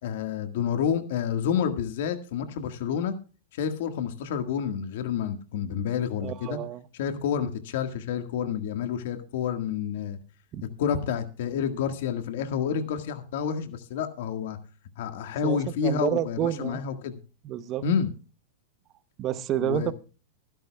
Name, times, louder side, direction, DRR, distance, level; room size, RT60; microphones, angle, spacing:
voice 1, 0.0-3.1 3.5-6.6 7.0-10.2 10.8-14.6 15.0-17.2 17.8-18.1 19.6-19.9, left 7 dB, 60° left, 1.6 m, -29 dB
voice 2, 6.2-6.8 10.5-10.6 15.4-16.8 17.4-17.8 19.2-19.9, right 11 dB, 25° right, 0.8 m, -29 dB
23.5 x 11.0 x 2.3 m
supercardioid pair, 160°, 0 cm